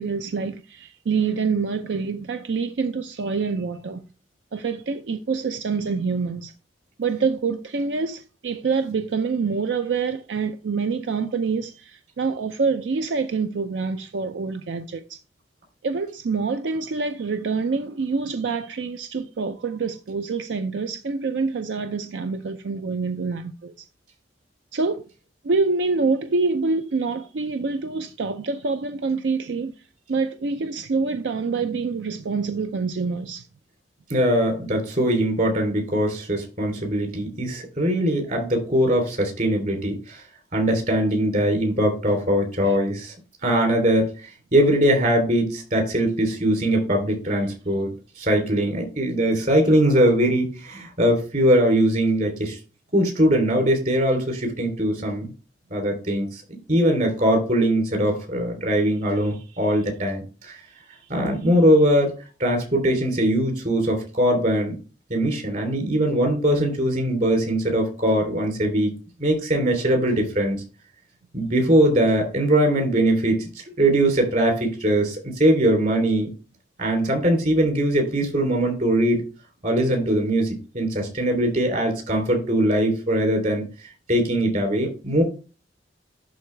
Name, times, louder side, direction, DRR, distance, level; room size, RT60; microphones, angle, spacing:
voice 1, 0.0-4.0 4.5-6.5 7.0-15.2 15.8-23.9 24.7-25.0 25.4-29.7 30.1-33.5 42.7-42.8, right 4 dB, 85° right, 0.5 m, -26 dB
voice 2, 34.1-40.2 40.5-43.1 43.4-52.6 52.9-55.3 55.7-56.4 56.7-60.6 61.1-62.1 62.4-64.8 65.1-68.9 69.2-70.6 71.3-73.5 73.8-76.3 76.8-79.2 79.6-83.6 84.1-85.2, right 1 dB, 50° right, 3.2 m, -21 dB
11.5 x 4.0 x 3.3 m
head